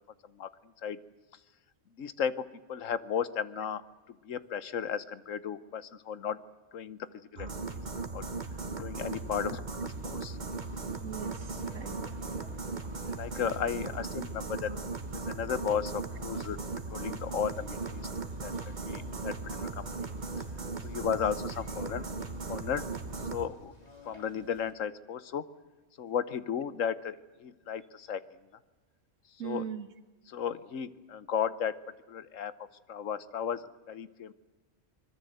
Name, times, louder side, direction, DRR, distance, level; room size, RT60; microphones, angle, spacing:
voice 1, 2.0-3.8 4.2-6.4 6.7-7.0 7.3-7.5 7.9-8.2 8.8-10.4 13.2-14.7 15.1-16.6 16.9-18.1 18.4-20.1 20.8-22.1 22.5-22.9 23.3-23.7 24.1-25.4 26.0-28.2 29.4-29.6 30.3-31.8 32.1-32.5 32.9-34.3, left 8 dB, 85° left, 15 dB, 1.3 m, -34 dB
sound 1, 7.4-23.5, right 3 dB, 40° right, 1.5 m, -37 dB
Conversation, 9.9-24.7, left 1 dB, 30° left, 3.8 m, -55 dB
voice 2, 11.0-12.2 20.8-20.9 29.4-29.9, right 9 dB, 85° right, 10 dB, 1.9 m, -40 dB
25.0 x 21.5 x 7.9 m, 1.2 s
omnidirectional pair, 1.3 m